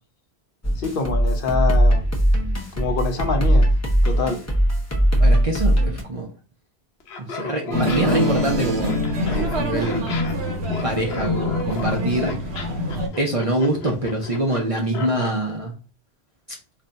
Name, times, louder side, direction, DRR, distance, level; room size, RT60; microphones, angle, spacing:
sound 1, 0.6-6.0, equal, 20° left, 0.4 m, -19 dB
voice 1, 0.8-2.0 2.8-3.7 4.0-4.4, left 4 dB, 65° left, 0.7 m, -25 dB
voice 2, 5.2-6.3 7.3-10.1 10.8-12.3 13.0-15.7, right 1 dB, 45° right, 0.4 m, -25 dB
Laughter, 7.0-15.4, left 5 dB, 90° left, 1.0 m, -34 dB
sound 2, 7.7-13.1, left 1 dB, 85° right, 1.0 m, -24 dB
2.5 x 2.2 x 3.9 m
omnidirectional pair, 1.1 m